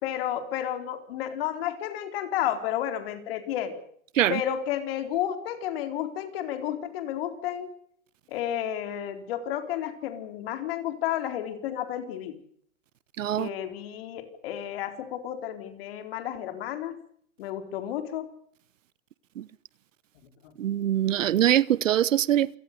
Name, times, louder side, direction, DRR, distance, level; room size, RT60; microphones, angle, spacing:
voice 1, 0.0-3.8 4.3-7.7 8.3-12.3 13.4-16.9 17.4-18.3 20.4-20.5, left 11 dB, 45° left, 4.1 m, -31 dB
voice 2, 13.2-13.5 19.4-19.5 20.6-22.5, right 11 dB, 70° right, 1.0 m, -23 dB
27.5 x 18.5 x 6.7 m
hypercardioid pair, 145°, 40 cm